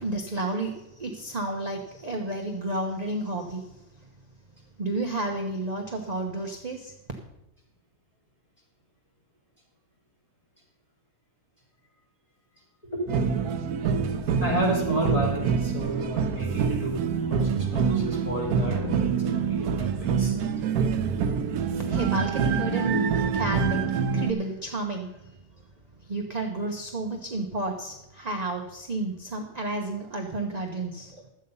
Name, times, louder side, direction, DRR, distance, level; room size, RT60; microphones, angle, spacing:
voice 1, 0.0-3.7 4.8-6.9 21.8-25.3 26.1-31.2, right 2 dB, 30° right, 2 dB, 1.0 m, -31 dB
voice 2, 12.8-13.3 14.4-20.3, right 1 dB, 25° left, -6 dB, 5.0 m, -31 dB
sound 1, 13.1-24.3, right 6 dB, 85° right, 1.2 m, -26 dB
12.5 x 8.3 x 5.5 m, 0.93 s
omnidirectional pair, 1.5 m